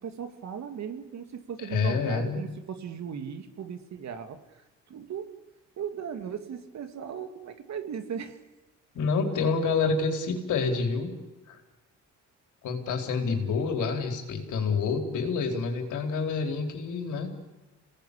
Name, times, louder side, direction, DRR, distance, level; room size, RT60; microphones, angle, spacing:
voice 1, 0.0-5.3 5.8-8.4, right 7 dB, 65° right, 8 dB, 2.7 m, -37 dB
voice 2, 1.7-2.4 8.9-11.1 11.5-11.6 12.6-17.3, left 4 dB, 80° left, 4 dB, 4.6 m, -28 dB
27.5 x 18.5 x 8.5 m, 1.1 s
cardioid pair, 90°, 30 cm